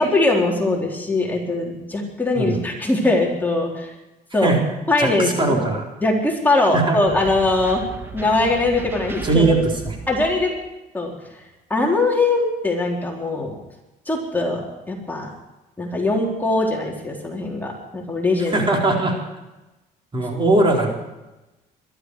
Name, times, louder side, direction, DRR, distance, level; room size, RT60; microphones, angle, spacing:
voice 1, 0.0-3.9 4.3-4.5 4.9-5.7 6.0-7.8 8.1-9.5 10.1-10.5 10.9-11.1 11.7-13.6 14.1-15.3 15.8-18.7, left 2 dB, 10° left, -2 dB, 3.9 m, -21 dB
voice 2, 5.0-5.8 6.7-7.0 9.2-9.6 9.8-10.0 18.4-19.1 20.1-20.9, right 2 dB, 30° right, 0 dB, 4.2 m, -19 dB
sound 1, 7.1-10.7, right 4 dB, 10° right, 1.5 m, -35 dB
22.0 x 13.5 x 4.8 m, 1.0 s
cardioid pair, 110°, 17 cm